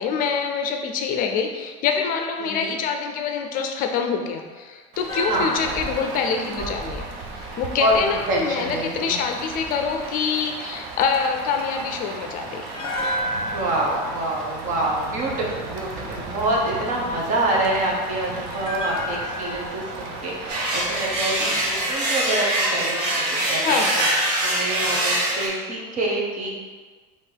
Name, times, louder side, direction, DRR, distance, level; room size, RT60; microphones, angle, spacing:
voice 1, 0.0-7.1 7.4-12.6 23.6-23.9, left 6 dB, 50° left, 4 dB, 0.5 m, -25 dB
voice 2, 2.4-2.8 5.3-5.5 6.4-6.7 7.8-9.2 13.5-24.1 24.4-26.5, right 1 dB, 45° right, -2 dB, 1.1 m, -26 dB
Rain, 4.9-21.9, right 3 dB, 60° right, 0.7 m, -36 dB
sound 1, 5.1-8.3 12.7-15.9 18.5-21.7 22.0-22.1, equal, 25° left, 0.9 m, -33 dB
sound 2, 20.5-25.5, right 1 dB, 85° right, 1.2 m, -23 dB
3.7 x 3.0 x 4.6 m, 1.4 s
supercardioid pair, 135°, 19 cm